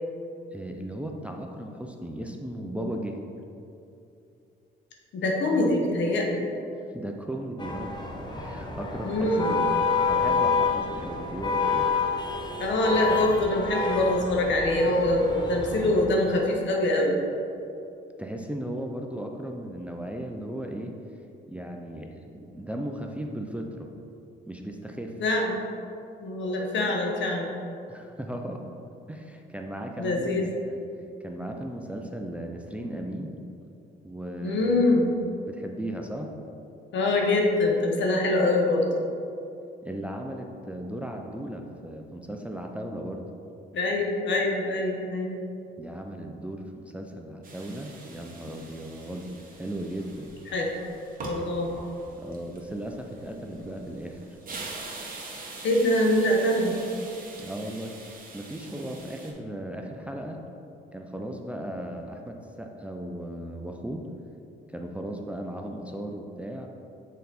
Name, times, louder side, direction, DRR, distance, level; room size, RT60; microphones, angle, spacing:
voice 1, 0.5-3.2 6.9-7.9 8.4-9.7 10.1-11.9 18.2-20.9 21.5-23.9 24.5-25.1 27.9-28.6 29.1-30.8 31.2-33.4 34.0-34.8 35.5-36.3 39.8-43.2 45.8-49.3 49.5-50.3 52.2-54.2 57.4-60.4 60.9-64.0 64.7-66.7, right 1 dB, 5° right, 2 dB, 0.5 m, -36 dB
voice 2, 5.1-6.4 9.0-9.6 12.6-17.2 25.2-25.6 26.2-27.5 30.0-30.5 34.4-35.1 36.9-38.9 43.7-45.3 50.5-50.7 51.2-51.7 55.6-56.8, left 1 dB, 65° left, 0 dB, 1.1 m, -24 dB
sound 1, 7.6-16.0, left 5 dB, 20° left, 0.8 m, -28 dB
sound 2, 47.4-59.3, right 3 dB, 45° right, 1.2 m, -43 dB
6.5 x 4.0 x 4.1 m, 2.7 s
cardioid pair, 90°, 20 cm